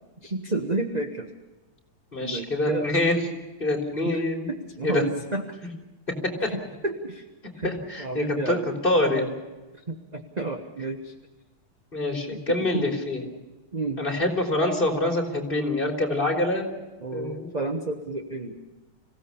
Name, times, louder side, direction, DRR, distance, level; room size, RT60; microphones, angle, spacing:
voice 1, 0.2-1.3 2.2-2.9 4.0-4.2 4.5-5.6 6.4-7.3 7.5-7.7 8.0-8.7 9.7-11.1 12.5-12.9 13.7-14.0 17.0-18.6, right 3 dB, 25° right, 4 dB, 1.1 m, -31 dB
voice 2, 2.1-3.2 3.6-4.5 4.8-5.0 6.4-6.5 7.6-9.3 11.9-13.2 14.0-16.7 17.1-17.5, left 2 dB, 25° left, 2 dB, 3.7 m, -25 dB
26.0 x 17.0 x 7.1 m, 1.2 s
omnidirectional pair, 2.2 m